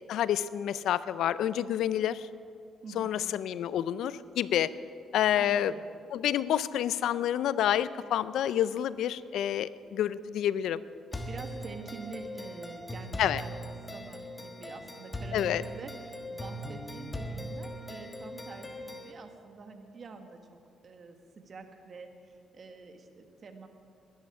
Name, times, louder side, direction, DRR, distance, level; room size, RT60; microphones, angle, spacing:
voice 1, 0.0-2.3 3.0-4.7 5.1-5.7 6.1-10.8 13.2-13.4 15.3-15.6, left 11 dB, 80° left, 16 dB, 0.4 m, -28 dB
voice 2, 2.8-3.2 5.3-5.8 10.7-10.8 11.3-13.5 13.9-20.6 20.8-23.7, right 4 dB, 45° right, 6 dB, 1.5 m, -46 dB
sound 1, 11.1-19.1, equal, 25° left, 1.5 m, -40 dB
19.5 x 11.0 x 4.9 m, 2.4 s
cardioid pair, 90°, 0 cm